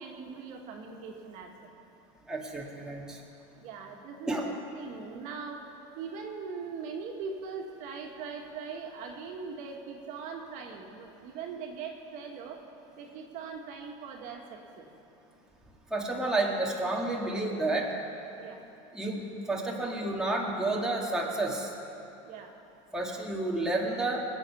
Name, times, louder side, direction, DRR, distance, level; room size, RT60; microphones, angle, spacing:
voice 1, 0.0-1.7 3.6-5.7 6.0-12.6 13.0-14.9 18.3-18.6 22.2-22.6, right 5 dB, 55° right, 1 dB, 1.9 m, -41 dB
voice 2, 2.3-3.2 4.3-4.4 15.9-17.9 18.9-21.7 22.9-24.2, right 2 dB, 5° right, -3 dB, 2.0 m, -30 dB
21.0 x 8.9 x 5.7 m, 2.8 s
supercardioid pair, 125°, 15 cm